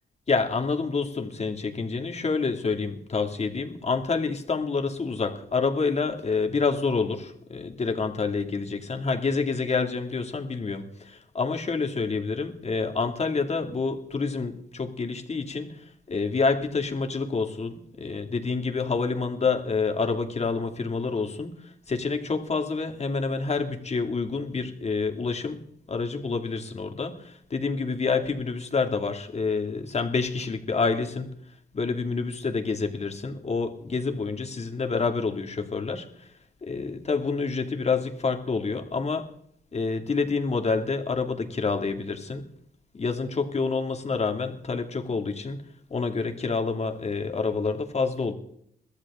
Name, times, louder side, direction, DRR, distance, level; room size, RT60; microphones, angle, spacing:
voice 1, 0.3-25.6 25.9-31.3 31.7-36.1 36.6-39.3 39.7-42.5 42.9-48.3, left 4 dB, 35° left, 2.4 m, -28 dB
22.5 x 15.0 x 3.7 m
cardioid pair, 90°, 20 cm